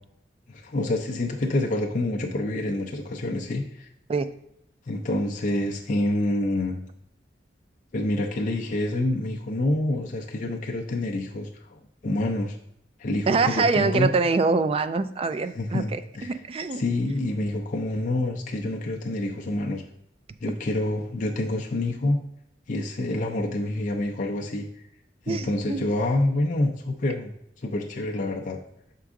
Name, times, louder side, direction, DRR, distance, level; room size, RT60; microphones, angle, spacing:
voice 1, 0.5-3.9 4.9-6.8 7.9-12.6 13.0-14.1 15.6-16.3 16.7-19.8 20.4-22.2 22.7-24.7 25.3-27.3 27.6-28.6, left 1 dB, 45° left, 0 dB, 0.5 m, -27 dB
voice 2, 13.3-16.8 25.3-25.8, right 4 dB, 30° right, 11 dB, 0.3 m, -25 dB
6.1 x 4.6 x 3.6 m, 0.78 s
head